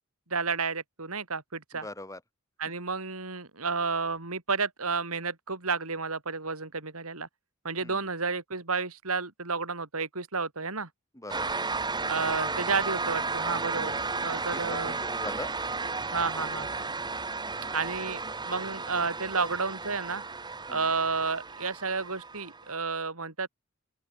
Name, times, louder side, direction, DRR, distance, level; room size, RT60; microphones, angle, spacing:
voice 1, 0.3-1.9 2.6-7.3 7.6-10.9 12.1-15.0 16.1-16.7 17.7-20.2 20.7-23.5, right 4 dB, 75° right, 3.5 m, -31 dB
voice 2, 1.8-2.2 2.7-2.8 7.8-8.0 11.1-11.6 14.3-15.5 16.4-16.6 20.7-20.9, left 1 dB, 15° left, 4.7 m, -42 dB
sound 1, 11.3-22.8, right 3 dB, 20° right, 1.9 m, -33 dB
open air
head